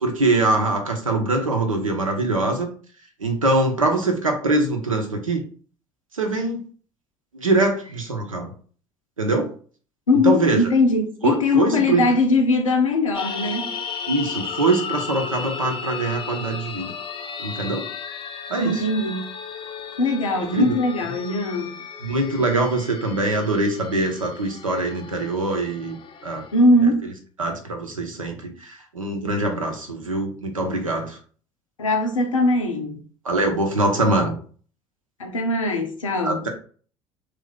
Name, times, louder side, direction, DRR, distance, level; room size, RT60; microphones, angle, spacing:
voice 1, 0.0-2.7 3.2-5.4 6.1-6.6 7.3-8.5 9.2-9.5 10.2-10.6 11.2-12.0 14.1-16.9 17.4-17.9 18.5-18.9 20.4-20.7 22.0-26.0 26.2-26.4 27.4-31.2 33.2-34.3 36.2-36.5, right 2 dB, 85° right, 0.7 m, -23 dB
voice 2, 10.1-13.8 18.6-19.3 20.0-21.8 26.5-27.1 31.8-33.0 35.2-36.5, left 2 dB, 80° left, 0.6 m, -21 dB
sound 1, 13.1-26.5, left 6 dB, 30° left, 0.5 m, -35 dB
3.2 x 2.4 x 3.9 m
figure-of-eight pair, 60°, 17 cm